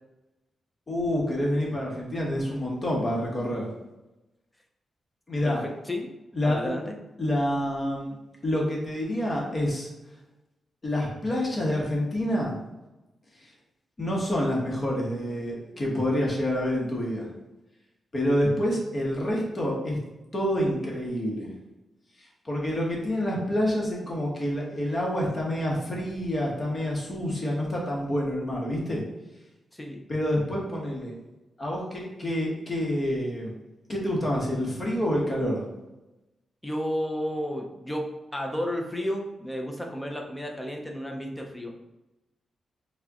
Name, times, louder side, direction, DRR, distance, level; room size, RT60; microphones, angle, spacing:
voice 1, 0.9-3.7 5.3-5.6 6.3-6.7 7.2-8.2 8.4-9.9 10.8-12.6 14.0-17.3 18.1-20.0 20.3-21.5 22.4-29.0 30.1-31.1 31.6-33.5 33.9-35.6, equal, 30° left, -2 dB, 0.9 m, -27 dB
voice 2, 5.4-6.1 6.4-7.0 29.7-30.1 36.6-41.8, equal, 5° left, 1 dB, 0.5 m, -32 dB
4.6 x 2.1 x 2.8 m, 1.0 s
wide cardioid pair, 140°, 0 cm